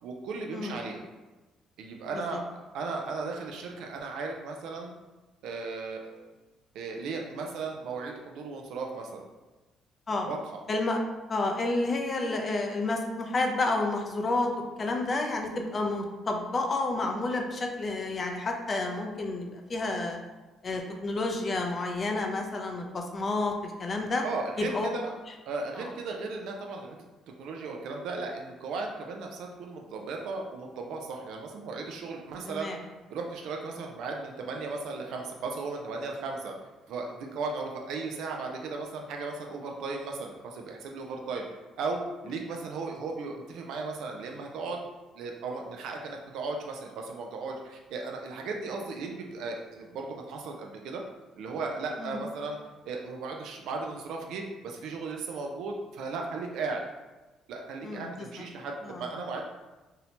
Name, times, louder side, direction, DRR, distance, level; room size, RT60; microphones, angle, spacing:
voice 1, 0.0-1.0 1.8-2.4 2.7-4.9 5.4-6.3 6.7-9.3 10.1-10.6 24.2-25.1 25.5-27.0 27.4-36.5 36.9-41.4 41.8-44.8 45.1-51.0 51.4-52.6 52.9-56.8 57.5-59.4, right 3 dB, 75° right, 1 dB, 0.3 m, -36 dB
voice 2, 10.7-11.0 11.3-14.5 14.8-20.2 20.6-24.2 24.6-24.9 25.8-25.9 32.5-32.8 52.0-52.2 57.8-58.3 58.9-59.0, left 2 dB, 40° left, 2 dB, 0.4 m, -30 dB
2.7 x 2.0 x 2.8 m, 1.1 s
supercardioid pair, 80°, 0 cm